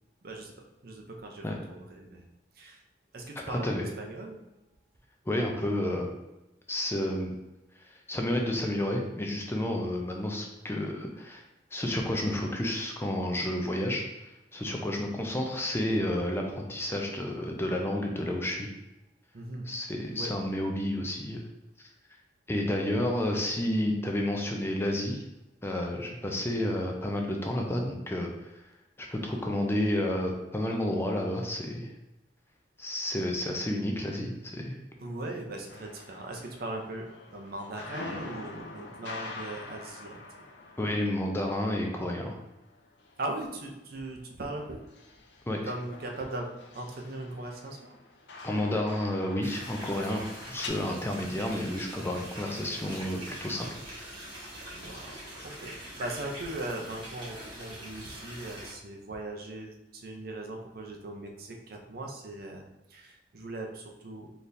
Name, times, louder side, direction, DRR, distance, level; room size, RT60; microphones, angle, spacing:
voice 1, 0.2-2.3 2.5-2.8 3.1-4.4 14.6-14.9 19.3-19.7 20.1-20.3 25.9-26.2 35.0-40.5 43.2-44.8 45.6-48.0 54.7-64.3, right 2 dB, 55° right, 2 dB, 0.6 m, -39 dB
voice 2, 3.5-3.9 5.3-6.1 6.7-7.3 8.1-11.4 11.7-14.0 14.5-18.7 19.7-21.4 22.5-25.2 25.6-28.5 29.0-31.9 32.8-34.8 40.8-42.4 45.5-45.6 48.4-50.2 50.5-53.7, left 1 dB, 15° left, 1 dB, 0.4 m, -30 dB
sound 1, 35.7-43.7 44.0-50.7, left 3 dB, 85° left, 0.6 m, -46 dB
sound 2, 49.4-58.7, right 1 dB, 25° right, 1.4 m, -43 dB
4.1 x 3.3 x 2.6 m, 0.97 s
head